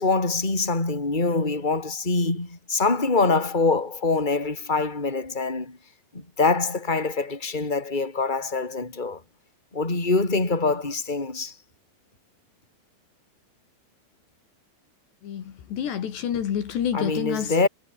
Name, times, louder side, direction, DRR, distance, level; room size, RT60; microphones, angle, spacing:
voice 1, 0.0-5.8 6.1-9.2 9.7-11.5 16.9-17.7, left 3 dB, 10° left, 4.5 m, -24 dB
voice 2, 15.2-17.5, left 9 dB, 70° left, 4.7 m, -28 dB
omnidirectional pair, 5.3 m